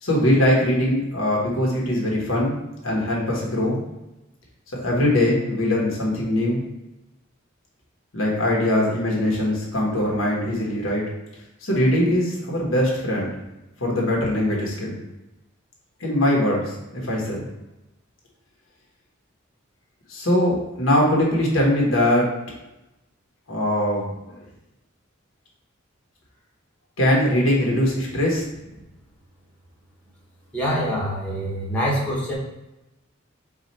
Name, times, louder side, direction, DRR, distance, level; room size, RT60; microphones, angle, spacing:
voice 1, 0.0-2.6 2.8-3.8 4.8-6.6 8.1-11.0 11.6-13.3 13.8-15.0 16.0-17.4 20.1-22.3 23.5-24.1 27.0-28.4, left 1 dB, 90° left, -3 dB, 1.3 m, -21 dB
voice 2, 30.5-32.3, equal, 5° left, -6 dB, 1.1 m, -25 dB
4.8 x 2.5 x 4.2 m, 0.95 s
head